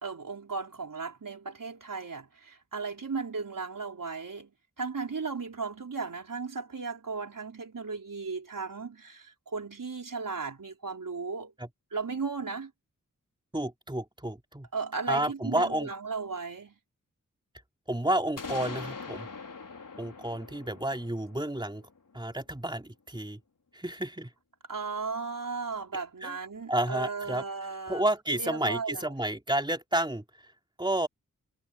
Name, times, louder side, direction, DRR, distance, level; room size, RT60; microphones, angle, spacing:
voice 1, 0.0-4.5 4.8-11.5 11.9-12.7 14.7-16.7 24.7-28.0 28.3-29.1, right 4 dB, 80° right, 4.8 m, -36 dB
voice 2, 13.5-14.7 15.1-15.9 17.9-19.3 20.0-21.8 22.1-23.4 23.7-24.3 26.2-26.4 26.7-27.4 27.9-30.2 30.8-31.1, right 1 dB, 15° right, 3.1 m, -30 dB
sound 1, 18.4-22.2, left 4 dB, 75° left, 4.3 m, -42 dB
wide cardioid pair, 65°, 32 cm